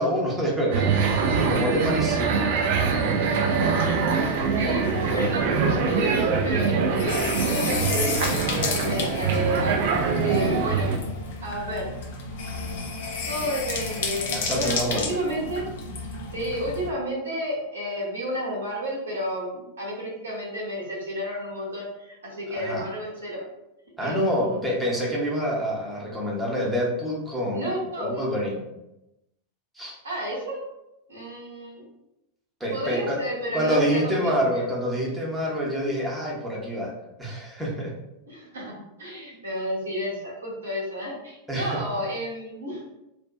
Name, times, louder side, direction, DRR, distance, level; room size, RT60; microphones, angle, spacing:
voice 1, 0.0-2.4 13.3-13.5 14.3-15.1 22.5-22.8 24.0-27.7 28.0-28.6 29.7-30.0 32.6-33.2 33.5-36.9 37.2-37.9 41.5-41.8, equal, 5° right, -4 dB, 0.8 m, -27 dB
sound 1, 0.7-11.0, right 5 dB, 55° right, 0.3 m, -24 dB
sound 2, 3.4-16.9, left 4 dB, 55° left, 0.4 m, -33 dB
voice 2, 3.8-10.0 10.2-10.9 11.4-11.9 13.3-15.6 16.3-23.4 24.0-24.6 27.5-28.2 30.0-30.6 31.1-31.8 32.7-34.6 38.3-42.8, equal, 70° right, -4 dB, 0.9 m, -31 dB
2.6 x 2.1 x 2.3 m, 0.90 s
figure-of-eight pair, 90°, 0 cm